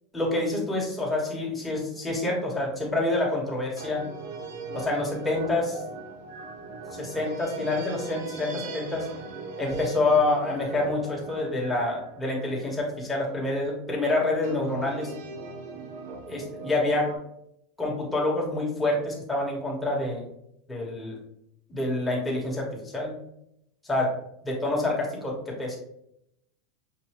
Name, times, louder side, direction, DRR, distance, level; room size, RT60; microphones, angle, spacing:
voice 1, 0.1-4.0 4.7-5.8 6.9-9.1 9.6-15.1 16.3-17.1 17.8-20.2 20.7-21.2 21.7-23.2 23.8-24.1 24.4-25.8, left 2 dB, 10° left, -3 dB, 1.3 m, -27 dB
sound 1, 1.9-2.4 3.8-13.4 14.4-17.2, right 3 dB, 85° right, 0.8 m, -40 dB
6.0 x 2.7 x 3.0 m, 0.76 s
supercardioid pair, 145°, 0 cm